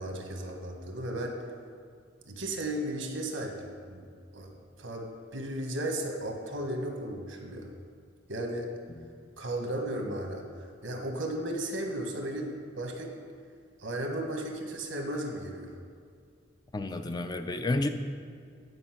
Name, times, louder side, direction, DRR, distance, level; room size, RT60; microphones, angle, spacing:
voice 1, 0.0-1.3 2.3-4.1 4.3-4.5 4.8-7.7 8.3-8.7 9.4-10.4 10.8-13.1 13.8-15.7, right 1 dB, 85° right, 2 dB, 1.3 m, -35 dB
voice 2, 16.7-17.9, left 2 dB, 20° left, 8 dB, 0.4 m, -30 dB
9.7 x 5.1 x 5.8 m, 2.2 s
head